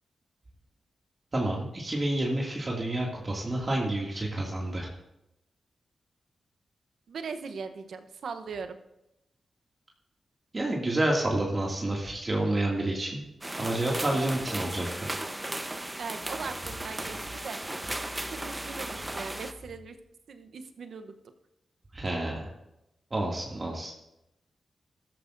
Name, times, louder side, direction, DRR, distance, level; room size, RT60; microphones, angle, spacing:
voice 1, 1.3-4.9 10.5-13.2 13.5-15.1 21.9-22.5 23.1-23.9, right 1 dB, 35° right, -2 dB, 2.2 m, -29 dB
voice 2, 7.1-8.8 16.0-17.6 18.3-20.0 20.3-21.1, right 5 dB, 75° right, 8 dB, 0.9 m, -39 dB
sound 1, 13.4-19.5, right 1 dB, 20° right, 0.9 m, -36 dB
sound 2, 16.2-19.9 20.5-20.6, equal, 55° right, 3.6 m, -48 dB
14.0 x 13.0 x 2.6 m, 0.87 s
cardioid pair, 60°, 0 cm